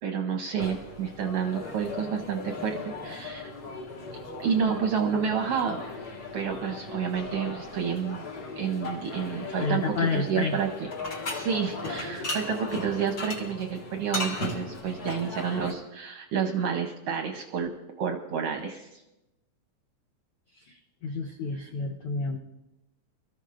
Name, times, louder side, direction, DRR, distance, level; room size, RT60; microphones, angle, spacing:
voice 1, 0.0-3.5 4.4-5.8 6.3-8.2 8.6-10.9 11.3-17.7 18.0-19.0, right 7 dB, 70° right, 4 dB, 1.5 m, -29 dB
sound 1, 0.6-15.7, left 2 dB, 40° left, 1.6 m, -37 dB
voice 2, 9.6-10.6 20.5-22.4, left 3 dB, 80° left, 3 dB, 1.2 m, -30 dB
23.5 x 14.0 x 2.5 m, 0.96 s
omnidirectional pair, 3.6 m